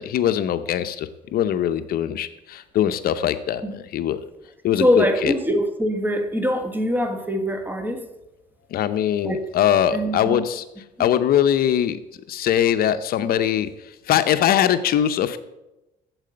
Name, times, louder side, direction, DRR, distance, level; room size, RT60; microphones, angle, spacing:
voice 1, 0.0-4.2 4.6-5.3 8.7-10.6 11.0-12.0 12.3-13.7 14.1-15.4, left 10 dB, 60° left, 11 dB, 0.6 m, -21 dB
voice 2, 4.8-8.0 9.2-9.4 9.9-10.4 11.0-11.1, equal, 10° right, 7 dB, 1.5 m, -23 dB
9.0 x 7.5 x 7.7 m, 0.97 s
cardioid pair, 110°, 17 cm